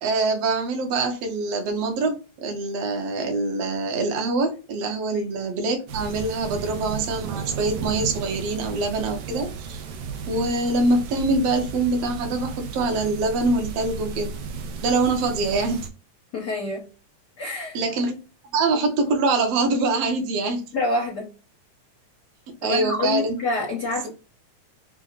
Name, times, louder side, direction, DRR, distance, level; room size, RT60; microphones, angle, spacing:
voice 1, 0.0-9.8 10.3-14.3 14.8-15.9 17.7-18.2 18.5-20.6 22.6-23.4 24.0-24.1, right 3 dB, 60° right, 1.8 m, -24 dB
sound 1, 5.9-15.9, right 5 dB, 85° right, 1.3 m, -34 dB
voice 2, 16.3-16.9 17.4-17.8 20.7-21.3 22.6-24.1, left 2 dB, 80° left, 0.9 m, -26 dB
7.0 x 2.4 x 2.4 m
omnidirectional pair, 3.7 m